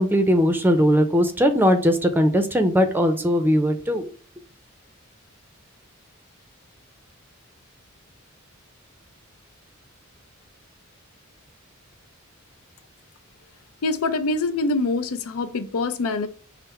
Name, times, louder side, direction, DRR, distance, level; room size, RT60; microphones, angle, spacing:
voice 1, 0.0-4.1, equal, 10° right, 0.5 m, -19 dB
voice 2, 13.8-16.3, left 3 dB, 75° left, 0.5 m, -24 dB
5.7 x 2.1 x 4.2 m
head